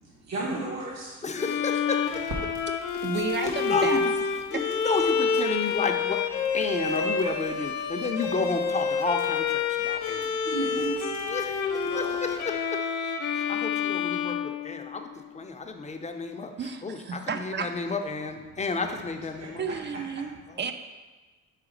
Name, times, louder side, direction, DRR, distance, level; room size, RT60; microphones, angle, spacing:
voice 1, 0.0-1.2 10.4-11.1 11.8-12.3 19.4-19.5, right 2 dB, 60° right, -5 dB, 1.1 m, -34 dB
voice 2, 1.2-2.5 3.1-6.2 6.5-10.4 11.2-12.9 13.3-19.9 20.5-20.6, left 4 dB, 25° left, 5 dB, 0.5 m, -32 dB
Bowed string instrument, 1.4-15.3, left 6 dB, 70° left, 0.6 m, -28 dB
Crackle, 2.0-12.5, right 1 dB, 90° right, 1.0 m, -47 dB
voice 3, 3.0-4.0 16.6-17.7 19.6-20.7, right 5 dB, 35° right, 8 dB, 0.5 m, -32 dB
4.9 x 4.0 x 5.0 m, 1.3 s
cardioid pair, 90°, 30 cm